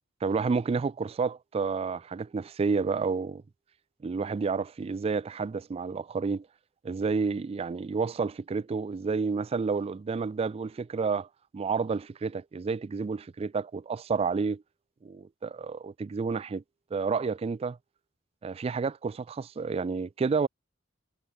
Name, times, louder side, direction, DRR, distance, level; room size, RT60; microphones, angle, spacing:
voice 1, 0.2-3.4 4.0-6.5 6.8-11.3 11.5-14.6 15.0-16.6 16.9-17.8 18.4-20.5, right 4 dB, 30° right, 0.3 m, -30 dB
head